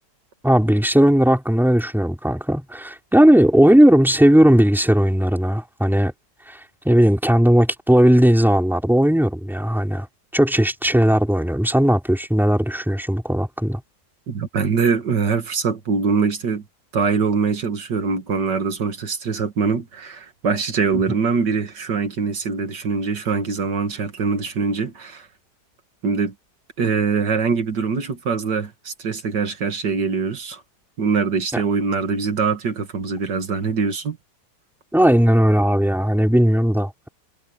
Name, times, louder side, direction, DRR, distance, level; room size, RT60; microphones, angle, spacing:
voice 1, 0.4-6.1 6.5-6.6 6.9-10.1 10.3-13.8 31.5-31.6 34.9-37.1, equal, ahead, 3.7 m, -17 dB
voice 2, 14.3-16.6 16.9-25.3 26.0-26.3 26.8-30.6 31.0-34.2, right 5 dB, 75° right, 2.4 m, -23 dB
omnidirectional pair, 1.9 m